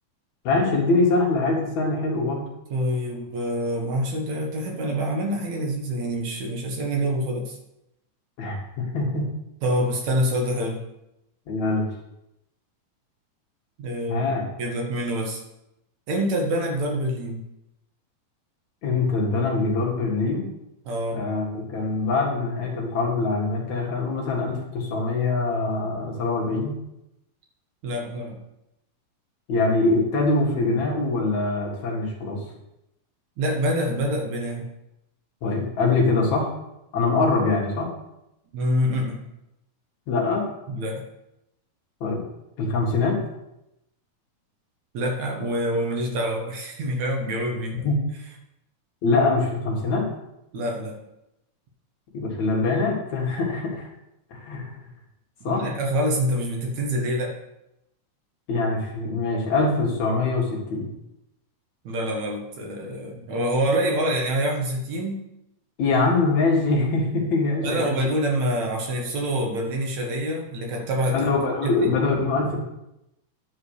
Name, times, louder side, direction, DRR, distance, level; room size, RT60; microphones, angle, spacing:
voice 1, 0.4-2.4 8.4-9.3 11.5-11.9 14.1-14.5 18.8-20.5 21.1-26.7 29.5-32.4 35.4-36.5 36.9-37.9 40.1-40.5 42.0-42.2 42.6-43.2 47.8-48.0 49.0-50.1 52.1-53.9 54.3-54.7 55.4-55.7 58.5-60.9 65.8-68.1 71.1-72.6, left 3 dB, 60° left, -2 dB, 3.0 m, -23 dB
voice 2, 2.7-7.6 9.6-10.8 13.8-14.2 14.6-15.4 16.1-17.4 20.9-21.3 27.8-28.4 33.4-34.7 38.5-39.2 40.7-41.0 44.9-47.8 50.5-51.0 55.4-57.4 61.8-65.2 67.6-71.3 71.6-71.7, equal, 65° right, 0 dB, 2.5 m, -26 dB
10.5 x 4.9 x 6.5 m, 0.87 s
omnidirectional pair, 3.8 m